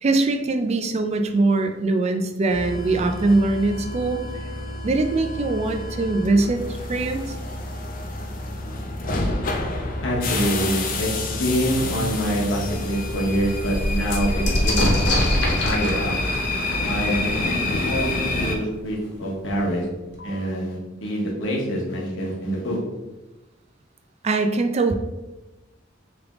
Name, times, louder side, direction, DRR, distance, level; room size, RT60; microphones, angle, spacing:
voice 1, 0.0-4.2 4.8-6.6 6.9-7.2 24.2-24.9, right 3 dB, 35° right, 6 dB, 0.3 m, -22 dB
sound 1, 2.5-18.6, left 2 dB, 45° left, 0.5 m, -28 dB
voice 2, 10.0-15.2 15.6-16.1 16.8-18.1 18.3-19.9 20.2-22.8, equal, 80° left, -2 dB, 1.2 m, -25 dB
sound 2, 12.0-12.1 12.6-12.7 13.0-18.5 19.5-19.6 19.8-20.4, left 1 dB, 60° left, 1.0 m, -26 dB
3.4 x 3.3 x 3.5 m, 1.1 s
head